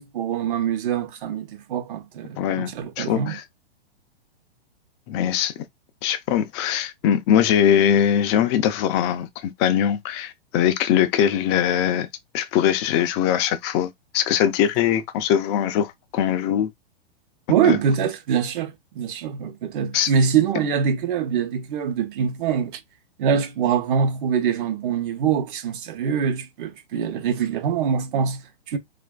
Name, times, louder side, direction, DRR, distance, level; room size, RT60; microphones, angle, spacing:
voice 1, 0.0-3.4 17.5-22.8 23.2-28.8, right 7 dB, 55° right, 0.8 m, -24 dB
voice 2, 2.4-3.4 5.1-5.5 6.0-12.1 12.3-16.7 17.7-17.8 19.9-20.1, left 9 dB, 30° left, 0.4 m, -21 dB
3.0 x 2.5 x 2.2 m
hypercardioid pair, 115°, 30 cm